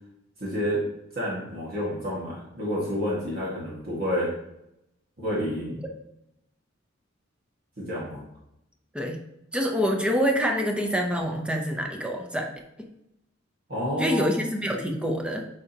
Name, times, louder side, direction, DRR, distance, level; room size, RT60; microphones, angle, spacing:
voice 1, 0.4-0.8 1.1-4.3 5.2-5.8 7.8-8.2 13.7-14.4, equal, 50° right, -6 dB, 1.8 m, -29 dB
voice 2, 9.5-12.5 12.8-12.9 14.0-15.5, equal, 5° right, 2 dB, 0.8 m, -26 dB
9.0 x 5.0 x 2.9 m, 0.83 s
head